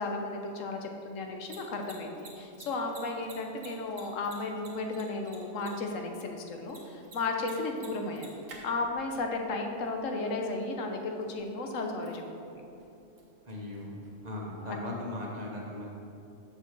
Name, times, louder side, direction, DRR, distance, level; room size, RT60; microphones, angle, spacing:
voice 1, 0.0-8.4 8.6-12.6 14.7-14.8, left 3 dB, 80° left, 3 dB, 1.2 m, -34 dB
Mechanisms, 1.3-14.8, right 3 dB, 80° right, 1.7 m, -55 dB
voice 2, 13.5-14.0 14.2-15.9, left 1 dB, 35° right, -3 dB, 1.3 m, -38 dB
6.5 x 6.4 x 6.6 m, 2.7 s
omnidirectional pair, 1.3 m